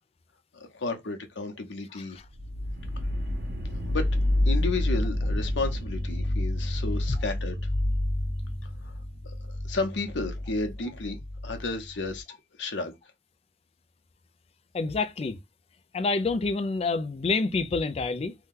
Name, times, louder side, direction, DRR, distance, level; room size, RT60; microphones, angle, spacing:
voice 1, 0.5-2.2 3.9-4.1 4.5-7.6 8.8-8.9 9.5-12.2 12.6-12.9, left 3 dB, 80° left, 0.8 m, -32 dB
sound 1, 2.3-12.2, left 1 dB, 65° right, 1.0 m, -29 dB
voice 2, 14.7-15.4 15.9-18.3, left 3 dB, 35° left, 0.3 m, -27 dB
2.7 x 2.2 x 3.6 m
head